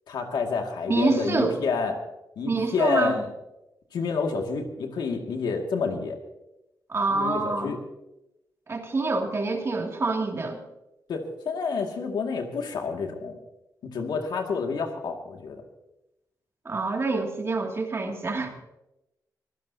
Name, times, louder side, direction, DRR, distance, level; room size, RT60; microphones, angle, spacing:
voice 1, 0.1-1.9 2.4-3.3 3.9-6.2 7.1-7.8 11.1-13.3 13.8-15.6, left 5 dB, 85° left, 3 dB, 2.2 m, -29 dB
voice 2, 0.9-1.6 2.5-3.1 6.9-7.7 8.7-10.6 16.6-18.5, right 3 dB, 35° right, 2 dB, 2.4 m, -26 dB
24.0 x 15.5 x 2.8 m, 0.92 s
cardioid pair, 105°, 7 cm